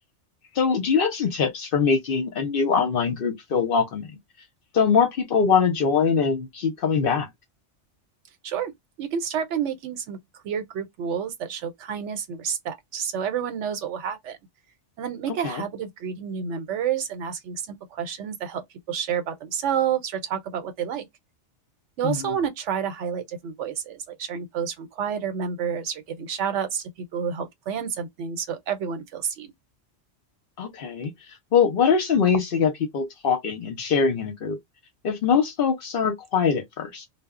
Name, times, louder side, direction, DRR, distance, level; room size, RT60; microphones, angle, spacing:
voice 1, 0.5-4.1 4.7-7.3 15.4-15.6 22.0-22.4 30.6-31.1 31.5-34.6 35.0-37.1, left 6 dB, 60° left, 0.7 m, -23 dB
voice 2, 9.0-10.2 10.4-14.4 15.0-18.6 18.9-21.1 22.0-29.5, right 8 dB, 80° right, 0.9 m, -29 dB
2.0 x 2.0 x 3.5 m
omnidirectional pair, 1.2 m